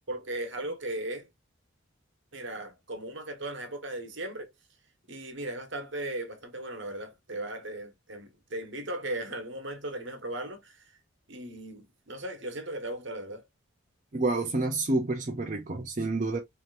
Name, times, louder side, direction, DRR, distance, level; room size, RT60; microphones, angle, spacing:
voice 1, 0.1-1.3 2.3-4.5 5.1-10.8 11.3-13.4, right 1 dB, 60° right, 1.2 m, -37 dB
voice 2, 14.1-16.4, right 2 dB, 35° right, 0.5 m, -28 dB
4.9 x 2.9 x 2.5 m
head